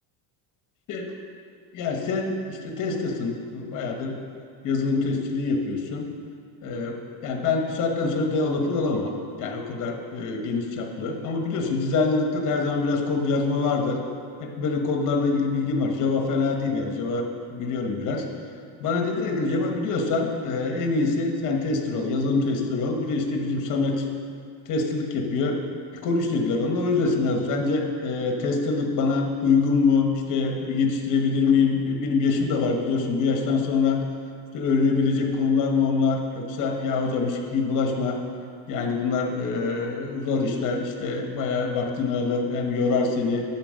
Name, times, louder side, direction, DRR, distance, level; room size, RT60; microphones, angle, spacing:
voice 1, 1.7-4.2 4.6-6.1 6.6-9.1 9.4-14.0 14.4-18.2 18.8-24.1 24.7-25.6 25.9-34.0 34.5-38.2 38.7-43.4, left 4 dB, 45° left, 3 dB, 1.2 m, -25 dB
12.0 x 4.4 x 6.3 m, 2.3 s
cardioid pair, 175°, 43 cm